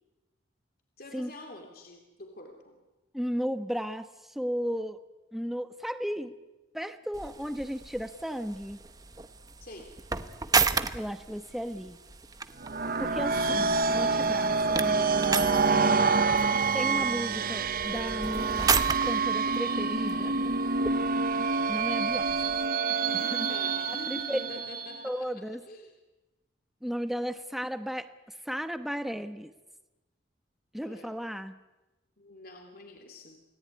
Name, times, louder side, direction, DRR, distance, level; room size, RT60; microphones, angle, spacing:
voice 1, 1.0-2.8 9.6-9.9 13.2-14.6 23.5-26.0 30.8-31.1 32.2-33.4, left 1 dB, 55° left, 3 dB, 3.2 m, -48 dB
voice 2, 3.1-4.1 4.3-5.0 5.3-6.3 6.7-8.8 10.9-12.0 13.0-15.1 15.7-16.1 16.7-18.7 19.0-20.4 21.7-22.6 23.1-23.6 24.1-24.4 25.0-25.6 26.8-28.1 28.4-29.5 30.7-31.6, equal, ahead, 9 dB, 1.2 m, -34 dB
sound 1, 7.1-22.7, right 4 dB, 20° right, 1.0 m, -34 dB
sound 2, 12.6-25.1, right 4 dB, 50° right, 1.1 m, -27 dB
29.0 x 18.5 x 9.7 m, 1.1 s
head